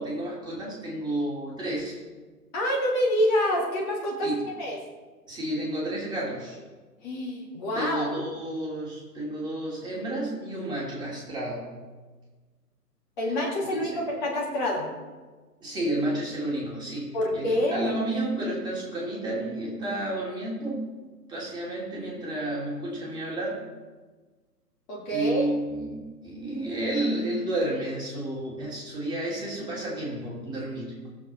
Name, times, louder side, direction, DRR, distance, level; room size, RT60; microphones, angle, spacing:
voice 1, 0.0-2.0 4.2-4.4 5.3-6.6 7.7-11.7 13.2-13.3 13.7-14.0 15.6-20.9 21.3-23.6 25.1-30.9, right 1 dB, 10° right, -5 dB, 2.7 m, -31 dB
voice 2, 2.5-4.3 4.6-4.8 7.0-8.2 13.2-14.9 17.1-17.9 24.9-25.5, equal, 30° left, -2 dB, 2.1 m, -27 dB
18.5 x 7.5 x 4.3 m, 1.3 s
figure-of-eight pair, 130°, 48 cm